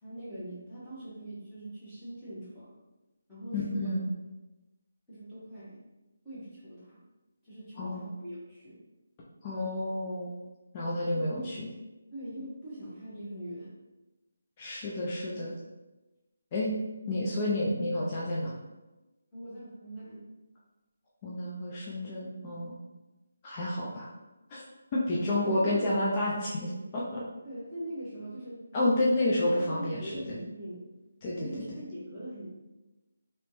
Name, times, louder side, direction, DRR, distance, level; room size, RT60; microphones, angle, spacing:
voice 1, 0.0-2.7 3.3-4.0 5.1-5.8 6.2-7.0 7.4-8.8 11.1-11.5 12.1-13.7 19.3-20.3 25.0-25.9 27.4-28.6 28.9-30.9 31.3-32.5, right 1 dB, 5° left, -15 dB, 1.3 m, -42 dB
voice 2, 3.5-4.0 7.8-8.1 9.4-10.3 10.7-11.7 14.6-15.5 16.5-16.7 17.1-18.5 21.2-22.7 23.4-24.1 24.5-24.6 24.9-27.2 28.7-30.4 31.2-31.5, left 1 dB, 25° left, -6 dB, 0.5 m, -30 dB
3.2 x 3.0 x 3.1 m, 1.1 s
figure-of-eight pair, 170°, 0 cm